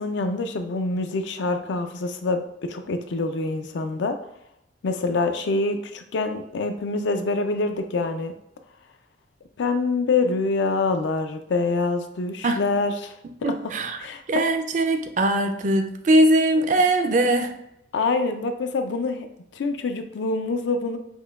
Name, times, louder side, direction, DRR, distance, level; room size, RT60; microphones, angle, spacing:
voice 1, 0.0-4.2 4.8-8.3 9.6-13.1 13.4-13.5 14.0-14.2 17.9-19.3 19.5-21.0, left 3 dB, 75° left, 7 dB, 0.4 m, -25 dB
voice 2, 13.4-14.0 14.3-17.5, right 1 dB, 40° right, 6 dB, 0.3 m, -21 dB
5.3 x 2.2 x 2.3 m, 0.80 s
head